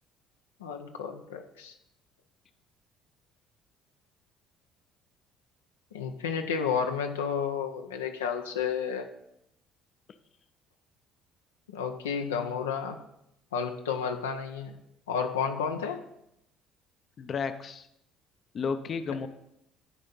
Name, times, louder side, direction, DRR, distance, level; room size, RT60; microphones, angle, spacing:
voice 1, 0.6-1.7 5.9-9.1 11.7-13.0 13.5-14.7 15.1-16.0 19.1-19.2, left 6 dB, 90° left, 4 dB, 0.6 m, -31 dB
voice 2, 17.2-17.9 18.5-19.3, left 5 dB, 45° left, 10 dB, 0.6 m, -32 dB
11.0 x 4.3 x 5.3 m, 0.81 s
hypercardioid pair, 60°, 0 cm